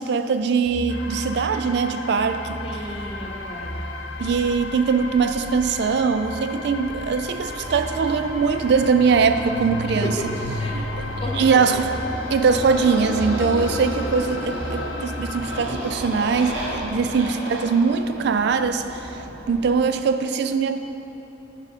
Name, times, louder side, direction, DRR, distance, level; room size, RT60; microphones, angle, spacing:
voice 1, 0.0-2.6 4.2-10.1 10.7-10.8 11.4-11.9 12.3-19.2 19.5-20.8, right 5 dB, 60° right, 8 dB, 0.3 m, -21 dB
sound 1, 0.7-17.2, equal, ahead, 1.2 m, -37 dB
sound 2, 0.9-15.6, left 3 dB, 70° left, 0.6 m, -36 dB
voice 2, 2.6-3.9 9.8-10.3 10.6-10.9 11.2-11.8, equal, 30° left, -1 dB, 0.9 m, -33 dB
Motorcycle, 7.1-19.8, equal, 80° right, 1.3 m, -33 dB
11.5 x 4.8 x 4.2 m, 2.9 s
head